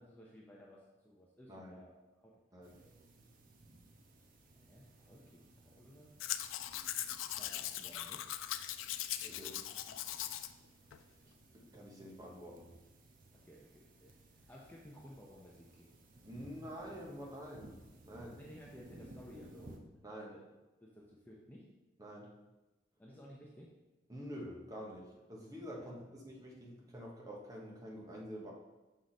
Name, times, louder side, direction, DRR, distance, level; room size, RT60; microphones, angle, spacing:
voice 1, 0.0-2.3 2.7-2.9 4.5-6.1 7.4-8.2 13.3-14.1 14.5-15.9 18.4-19.9 20.3-20.4 20.8-21.7 23.0-23.7 25.7-25.9, equal, 10° left, -4 dB, 0.6 m, -56 dB
voice 2, 1.5-1.8 2.5-2.8 9.2-10.2 11.5-12.7 16.2-17.7 18.0-18.4 20.0-20.3 22.0-22.3 24.1-28.5, equal, 20° right, -2 dB, 1.0 m, -48 dB
sound 1, 2.6-19.8, right 1 dB, 45° right, 0.7 m, -59 dB
Domestic sounds home sounds, 6.2-10.5 10.9-11.0, left 12 dB, 90° left, 0.4 m, -40 dB
6.4 x 4.6 x 4.1 m, 1.1 s
head